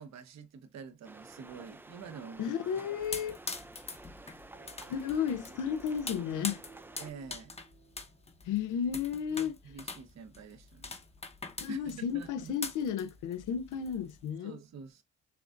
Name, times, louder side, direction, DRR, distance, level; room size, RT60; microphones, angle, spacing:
voice 1, 0.0-2.5 7.0-7.6 9.3-11.0 11.7-12.6 14.4-15.0, right 6 dB, 60° right, 0.9 m, -47 dB
sound 1, 1.0-7.1, right 2 dB, 5° right, 0.3 m, -51 dB
voice 2, 2.4-3.3 4.9-6.6 8.4-9.5 11.6-14.6, left 8 dB, 85° left, 0.6 m, -33 dB
sound 2, 3.0-14.3, left 3 dB, 20° left, 0.8 m, -43 dB
sound 3, 4.5-8.8, right 5 dB, 85° right, 2.2 m, -56 dB
6.7 x 2.5 x 2.4 m
cardioid pair, 90°, 30 cm